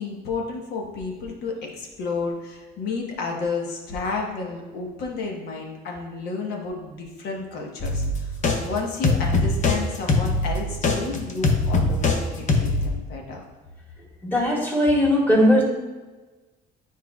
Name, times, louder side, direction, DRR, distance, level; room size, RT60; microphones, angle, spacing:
voice 1, 0.0-8.3 8.6-13.4, left 4 dB, 70° left, 0 dB, 1.3 m, -31 dB
sound 1, 7.8-8.6 9.0-9.8 10.1-12.2 12.5-12.9, left 3 dB, 45° left, 0.9 m, -22 dB
voice 2, 14.2-15.6, equal, 10° left, -4 dB, 1.9 m, -19 dB
9.4 x 4.6 x 2.3 m, 1.2 s
cardioid pair, 110°, 17 cm